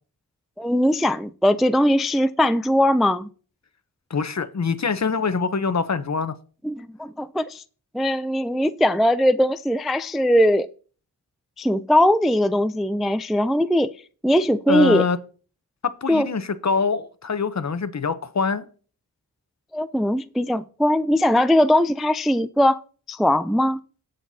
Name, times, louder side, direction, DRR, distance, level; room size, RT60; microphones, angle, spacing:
voice 1, 0.6-3.3 6.6-7.6 7.9-10.7 11.6-13.9 14.2-15.0 16.1-16.3 19.7-22.8 23.1-23.8, left 1 dB, ahead, 0.3 m, -20 dB
voice 2, 4.1-6.3 14.7-15.2 16.0-18.6, left 5 dB, 40° left, 0.8 m, -24 dB
17.5 x 6.6 x 2.8 m
cardioid pair, 60°, 41 cm